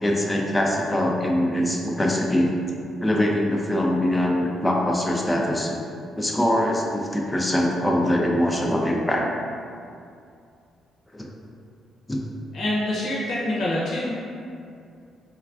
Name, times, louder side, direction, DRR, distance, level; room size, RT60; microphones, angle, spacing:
voice 1, 0.0-2.6 3.0-5.8 6.2-9.3 11.1-11.3 12.1-12.2, left 1 dB, 10° left, -1 dB, 0.3 m, -23 dB
voice 2, 12.5-14.1, left 1 dB, 70° left, -7 dB, 0.6 m, -25 dB
3.1 x 2.3 x 2.4 m, 2.4 s
cardioid pair, 90°, 0 cm